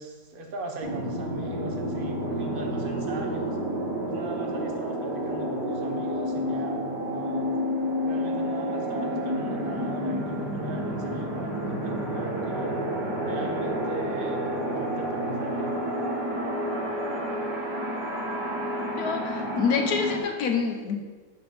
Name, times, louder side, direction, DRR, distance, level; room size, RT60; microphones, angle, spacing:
voice 1, 0.0-3.6 4.1-7.5 8.0-12.8 13.1-15.7, right 2 dB, 40° right, 3 dB, 0.8 m, -39 dB
sound 1, 0.8-20.2, equal, 75° right, 2.0 m, -30 dB
voice 2, 19.0-21.0, left 5 dB, 65° left, 3 dB, 1.2 m, -27 dB
5.8 x 5.6 x 5.1 m, 1.4 s
omnidirectional pair, 1.9 m